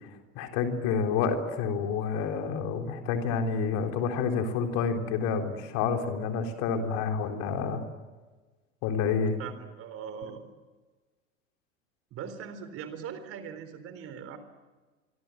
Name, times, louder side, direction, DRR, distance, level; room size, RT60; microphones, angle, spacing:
voice 1, 0.4-7.8 8.8-9.3, left 5 dB, 45° left, 5 dB, 3.9 m, -29 dB
voice 2, 9.4-10.4 12.1-14.4, right 7 dB, 35° right, 10 dB, 3.9 m, -40 dB
26.5 x 25.0 x 7.7 m, 1.3 s
figure-of-eight pair, 85°, 38 cm